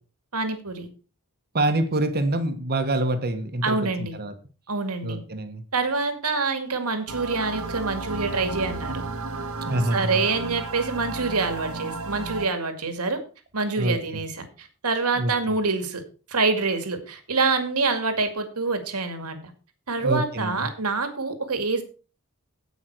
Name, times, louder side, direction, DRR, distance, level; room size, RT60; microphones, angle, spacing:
voice 1, 0.3-0.9 3.6-4.2 4.7-5.2 5.7-9.0 9.9-13.2 13.5-16.0 16.3-19.4 19.9-21.8, right 3 dB, 90° right, 8 dB, 2.2 m, -26 dB
voice 2, 1.5-3.8 4.2-4.3 5.0-5.6 9.7-10.2 13.8-14.2 15.2-15.3 20.0-20.7, right 1 dB, 45° right, 8 dB, 1.4 m, -26 dB
sound 1, 7.1-12.5, right 3 dB, 70° right, 1.5 m, -33 dB
16.5 x 5.7 x 4.7 m, 0.35 s
head